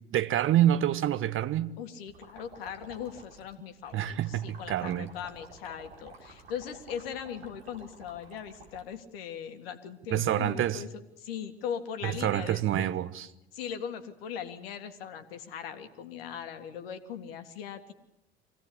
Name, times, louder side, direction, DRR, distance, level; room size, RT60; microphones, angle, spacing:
voice 1, 0.1-1.7 3.9-5.1 10.1-10.8 12.0-13.3, right 12 dB, 40° right, 1.2 m, -27 dB
voice 2, 1.8-10.9 11.2-12.9 13.5-17.9, left 8 dB, 65° left, 2.0 m, -39 dB
sound 1, 2.1-8.8, right 2 dB, 75° right, 4.4 m, -51 dB
24.5 x 17.0 x 8.6 m
figure-of-eight pair, 65°, 31 cm